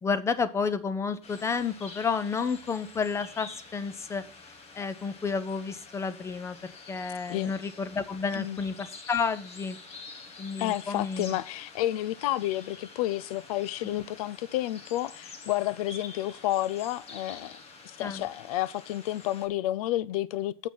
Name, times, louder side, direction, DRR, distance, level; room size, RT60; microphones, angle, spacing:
voice 1, 0.0-4.2 4.7-9.8 10.4-11.4 13.8-14.0 18.0-18.3, left 5 dB, 15° left, 0.7 m, -31 dB
Birds In Spring (Scotland), 1.2-19.5, left 4 dB, 30° left, 1.5 m, -48 dB
voice 2, 10.6-17.6 17.8-20.7, left 14 dB, 65° left, 0.6 m, -30 dB
7.4 x 5.9 x 6.0 m
supercardioid pair, 135°, 20 cm